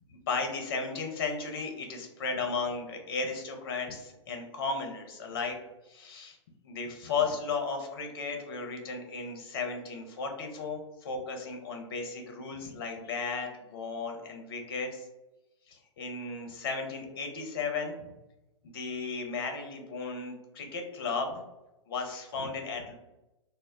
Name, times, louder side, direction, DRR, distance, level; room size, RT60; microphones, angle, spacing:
voice 1, 0.3-5.6 5.9-6.4 6.6-15.1 15.7-18.1 18.7-21.4 21.9-22.9, left 4 dB, 45° left, 3 dB, 0.6 m, -35 dB
2.1 x 2.0 x 3.5 m, 0.98 s
figure-of-eight pair, 110°, 16 cm